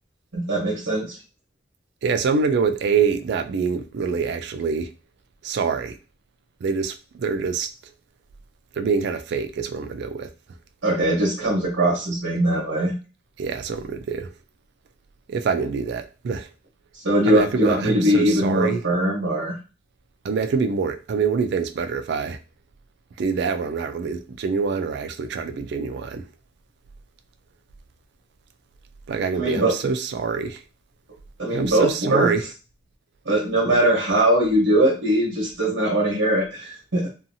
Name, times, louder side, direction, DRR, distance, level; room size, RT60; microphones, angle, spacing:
voice 1, 0.3-1.1 10.8-12.9 17.0-19.6 29.4-29.7 31.4-32.3 33.2-37.1, right 1 dB, 90° right, 1.0 m, -21 dB
voice 2, 2.0-4.9 5.4-6.0 6.6-7.7 8.8-10.3 13.4-14.3 15.3-16.5 17.3-18.8 20.2-22.4 23.2-26.3 29.1-30.6 31.5-32.4, right 5 dB, 60° right, 0.3 m, -25 dB
2.7 x 2.4 x 2.6 m
head